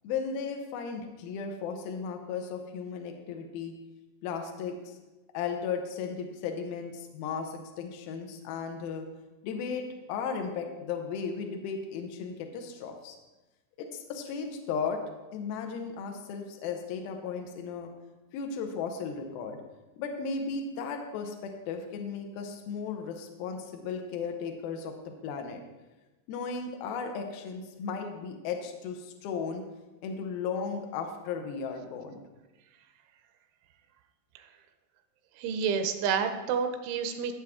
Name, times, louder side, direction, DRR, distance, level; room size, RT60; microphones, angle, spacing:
voice 1, 0.0-3.7 4.2-5.0 5.3-9.1 9.4-13.2 13.8-15.0 15.3-17.9 18.3-19.6 20.0-24.9 25.2-25.6 26.3-29.6 30.0-32.2, left 5 dB, 80° left, 3 dB, 2.2 m, -35 dB
voice 2, 35.4-37.3, right 6 dB, 80° right, 7 dB, 3.1 m, -29 dB
14.5 x 7.5 x 3.6 m, 1.1 s
omnidirectional pair, 5.5 m